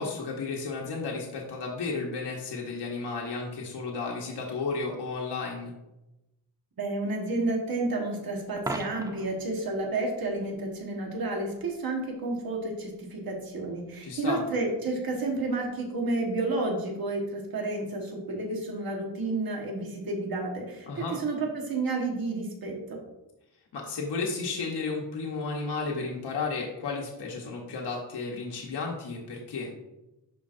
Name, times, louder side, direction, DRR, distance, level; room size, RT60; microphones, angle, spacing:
voice 1, 0.0-5.7 14.0-14.4 20.9-21.2 23.7-29.7, left 4 dB, 65° left, -1 dB, 1.2 m, -33 dB
voice 2, 6.8-23.0, right 2 dB, 55° right, 0 dB, 1.5 m, -31 dB
Coin (dropping), 8.6-9.4 15.5-15.7, right 2 dB, 10° right, 0.4 m, -36 dB
11.0 x 4.4 x 2.6 m, 0.95 s
wide cardioid pair, 150°, 43 cm